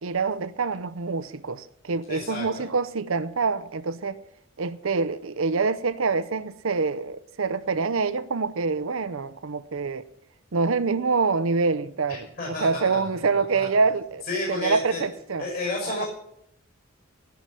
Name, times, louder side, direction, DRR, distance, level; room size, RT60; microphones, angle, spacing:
voice 1, 0.0-4.2 4.6-10.0 10.5-15.5 15.9-16.1, right 4 dB, 65° right, 0.7 m, -26 dB
voice 2, 2.1-2.7 12.1-13.7 14.3-15.0 15.4-16.1, left 2 dB, 45° left, 6.0 m, -32 dB
17.5 x 5.9 x 9.2 m
head